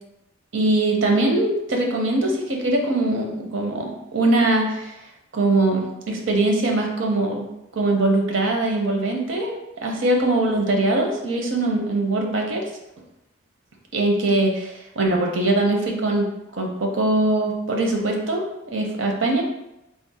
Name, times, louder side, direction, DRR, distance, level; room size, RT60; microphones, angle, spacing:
voice 1, 0.5-4.9 5.3-7.5 7.7-12.7 13.9-16.3 16.6-19.4, right 2 dB, 70° right, 1 dB, 0.7 m, -22 dB
3.6 x 2.0 x 4.1 m, 0.90 s
head